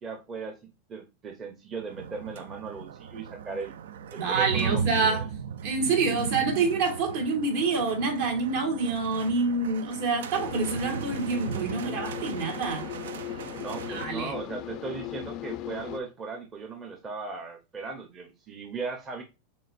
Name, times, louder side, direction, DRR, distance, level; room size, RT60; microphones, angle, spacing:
voice 1, 0.0-3.8 4.1-5.3 13.6-19.2, right 4 dB, 25° right, 0.7 m, -37 dB
sound 1, 1.8-14.1, right 7 dB, 85° right, 0.3 m, -36 dB
voice 2, 4.2-5.3 5.6-12.9 13.9-14.4, right 4 dB, 65° right, 1.7 m, -27 dB
sound 2, 10.3-16.0, left 14 dB, 40° left, 0.3 m, -38 dB
6.2 x 2.5 x 2.4 m
supercardioid pair, 145°, 0 cm